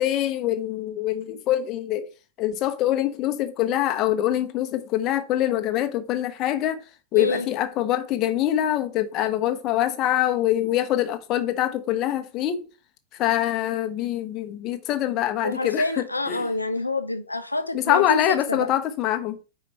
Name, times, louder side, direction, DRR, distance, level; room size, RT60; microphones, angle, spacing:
voice 1, 0.0-2.1 2.4-6.8 7.1-12.6 13.1-16.5 17.7-19.4, left 12 dB, 35° left, 0.9 m, -24 dB
voice 2, 7.1-7.5 15.4-18.7, left 2 dB, 85° left, 0.6 m, -27 dB
5.0 x 4.7 x 4.5 m
figure-of-eight pair, 90°, 0 cm